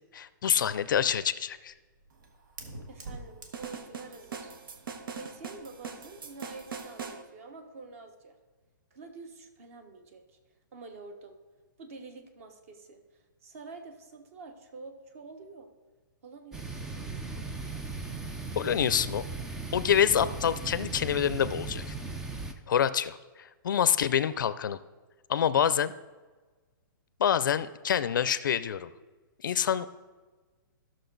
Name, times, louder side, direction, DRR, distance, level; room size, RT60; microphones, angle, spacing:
voice 1, 0.1-1.7 18.6-19.2 19.7-21.9 22.7-24.8 25.3-25.9 27.2-28.9 29.4-29.9, left 9 dB, 65° left, 15 dB, 0.5 m, -26 dB
Fire, 0.6-6.8, right 2 dB, 60° right, 1.6 m, -50 dB
voice 2, 2.9-4.5 5.1-8.3 8.9-10.2 10.7-11.4 11.8-13.0 13.4-15.7 16.2-17.5, right 3 dB, 40° right, 7 dB, 1.2 m, -47 dB
sound 1, 3.5-7.2, right 6 dB, 80° right, 1.1 m, -41 dB
sound 2, 16.5-22.5, right 3 dB, 5° right, 0.3 m, -37 dB
14.5 x 6.4 x 4.0 m, 1.3 s
hypercardioid pair, 170°, 11 cm